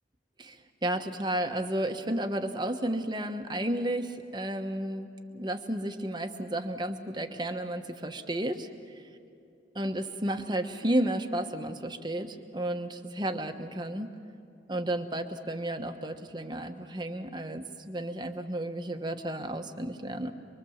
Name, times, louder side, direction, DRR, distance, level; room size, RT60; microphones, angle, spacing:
voice 1, 0.4-5.1 5.3-8.7 8.9-9.0 9.8-14.1 14.7-20.3, right 1 dB, 25° right, 6 dB, 1.1 m, -32 dB
24.0 x 23.5 x 7.2 m, 2.5 s
head